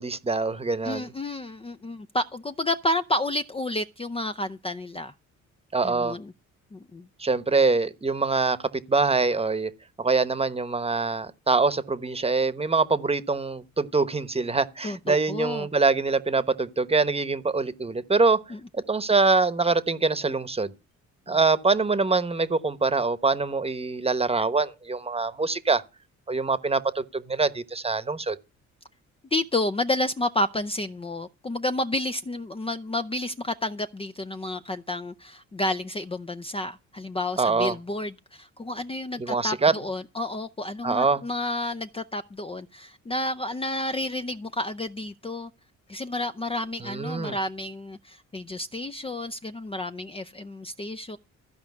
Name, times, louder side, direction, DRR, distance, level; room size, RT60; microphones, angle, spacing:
voice 1, 0.0-1.1 5.7-6.2 7.2-8.6 8.9-9.7 10.0-18.4 18.7-20.7 21.3-25.8 26.3-28.4 37.4-37.7 39.2-39.7 40.8-41.2 46.8-47.4, right 4 dB, 20° right, 1.1 m, -24 dB
voice 2, 0.8-5.1 5.8-6.3 6.7-7.1 14.8-15.7 18.5-18.6 21.3-21.4 29.3-45.5 45.9-51.2, left 1 dB, 20° left, 0.6 m, -30 dB
14.5 x 5.1 x 9.5 m
cardioid pair, 90°, 30 cm